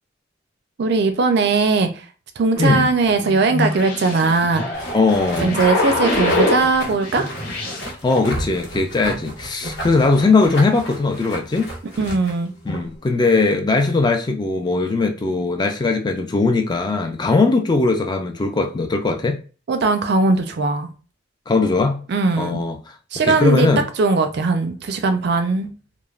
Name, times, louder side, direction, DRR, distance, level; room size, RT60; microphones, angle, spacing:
voice 1, 0.8-2.0 2.4-4.6 5.4-7.3 12.0-12.5 19.7-20.9 22.1-22.6 23.1-23.7 24.0-25.7, right 3 dB, 55° right, 0.4 m, -19 dB
sound 1, 2.5-6.7 7.0-7.9, left 2 dB, 55° left, 1.0 m, -24 dB
sound 2, 4.7-13.0, right 1 dB, 75° left, 1.0 m, -33 dB
voice 2, 4.9-5.6 8.0-11.7 12.7-19.4 21.5-22.0 22.4-22.8 23.2-23.9, left 3 dB, 20° left, 0.3 m, -19 dB
3.1 x 2.0 x 2.3 m
head